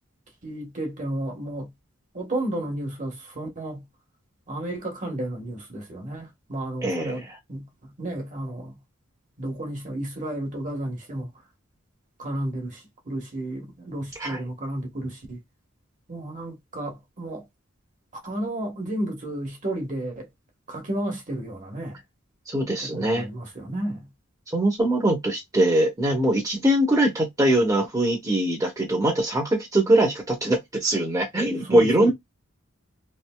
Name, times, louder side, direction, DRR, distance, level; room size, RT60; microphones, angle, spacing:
voice 1, 0.4-1.7 2.1-3.8 4.5-7.2 7.5-8.8 9.4-11.3 12.2-15.4 16.1-17.4 18.2-20.3 20.7-22.0 22.8-24.1 31.7-32.1, right 1 dB, 40° right, 1.1 m, -32 dB
voice 2, 6.8-7.4 14.2-14.4 22.5-23.3 24.5-32.1, right 1 dB, 15° right, 0.8 m, -22 dB
3.2 x 2.5 x 2.2 m
head